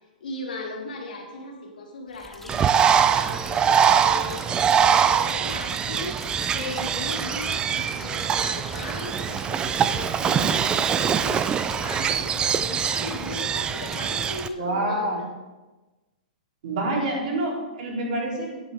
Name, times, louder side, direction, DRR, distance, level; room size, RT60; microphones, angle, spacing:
voice 1, 0.2-15.3, left 3 dB, 75° left, 0 dB, 2.6 m, -37 dB
sound 1, 2.1-14.5, left 2 dB, 5° left, 0.8 m, -42 dB
Bird, 2.5-14.5, right 8 dB, 20° right, 0.3 m, -23 dB
voice 2, 14.6-15.2 16.6-18.7, right 1 dB, 60° right, -2 dB, 3.5 m, -27 dB
10.5 x 9.4 x 3.6 m, 1.2 s
hypercardioid pair, 130°, 5 cm